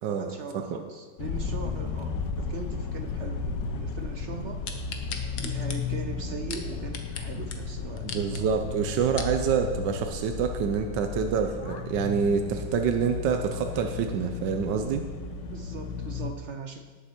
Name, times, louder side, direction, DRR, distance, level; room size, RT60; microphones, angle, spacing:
voice 1, 0.1-4.7 5.3-8.5 15.5-16.8, right 4 dB, 55° right, 6 dB, 0.8 m, -40 dB
sound 1, 1.2-16.3, left 5 dB, 85° left, 1.5 m, -34 dB
sound 2, 4.7-7.2 7.5-7.6 8.0-8.4 8.9-9.4 10.0-10.1, left 6 dB, 70° left, 1.6 m, -37 dB
voice 2, 8.0-15.0, right 6 dB, 85° right, 5 dB, 1.4 m, -27 dB
18.0 x 7.3 x 4.5 m, 1.5 s
omnidirectional pair, 1.9 m